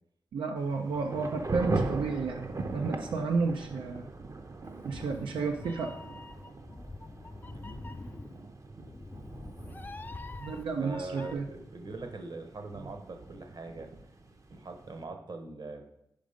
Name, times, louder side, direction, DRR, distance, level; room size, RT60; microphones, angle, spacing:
voice 1, 0.3-4.1 4.8-5.9 10.4-11.4, right 4 dB, 90° right, 2 dB, 0.5 m, -31 dB
Thunder / Rain, 0.6-15.0, right 3 dB, 40° right, 0.6 m, -40 dB
Meow, 4.6-11.3, left 2 dB, 20° left, 0.3 m, -45 dB
voice 2, 10.8-13.9 14.5-15.8, right 3 dB, 55° right, 5 dB, 1.0 m, -42 dB
5.2 x 5.0 x 5.1 m, 0.80 s
cardioid pair, 60°, 9 cm